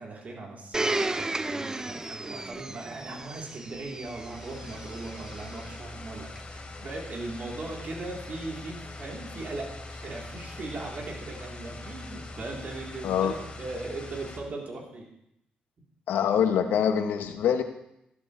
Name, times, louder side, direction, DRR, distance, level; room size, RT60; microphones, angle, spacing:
voice 1, 0.0-15.1, right 2 dB, 50° right, -2 dB, 3.8 m, -39 dB
Domestic sounds home sounds, 0.7-5.6 6.3-6.4, right 2 dB, 20° right, 0.6 m, -34 dB
sound 1, 4.0-14.4, left 2 dB, 35° left, 3.1 m, -42 dB
voice 2, 13.0-13.3 16.1-17.6, left 8 dB, 85° left, 7 dB, 1.2 m, -24 dB
14.5 x 12.5 x 3.4 m, 0.81 s
cardioid pair, 70°, 3 cm